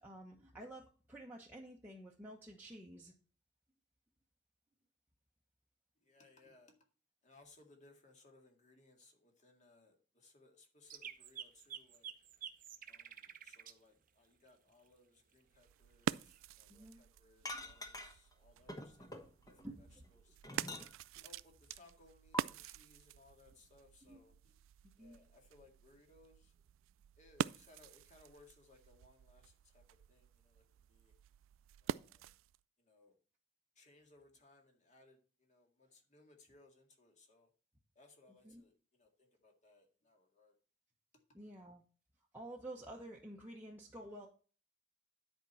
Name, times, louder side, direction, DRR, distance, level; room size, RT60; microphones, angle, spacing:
voice 1, 0.0-3.1 16.7-17.0 17.5-17.7 19.6-20.0 24.0-24.2 25.0-25.2 38.4-38.6 41.3-41.8 42.3-44.3, right 1 dB, 10° right, 1.0 m, -51 dB
voice 2, 6.0-6.7 7.2-12.1 12.9-20.7 21.2-24.5 25.0-26.5 27.2-30.6 30.9-31.1 31.8-32.3 32.8-33.1 33.8-37.5 38.0-40.5, left 2 dB, 40° left, 2.1 m, -65 dB
sound 1, 10.9-13.7 16.1-16.6, right 9 dB, 45° right, 0.7 m, -49 dB
sound 2, 15.5-32.6, right 9 dB, 85° right, 0.3 m, -46 dB
sound 3, 17.4-18.3 18.7-19.6 20.0-21.2 22.3-22.4, left 2 dB, 20° left, 1.1 m, -46 dB
10.5 x 4.4 x 5.6 m
head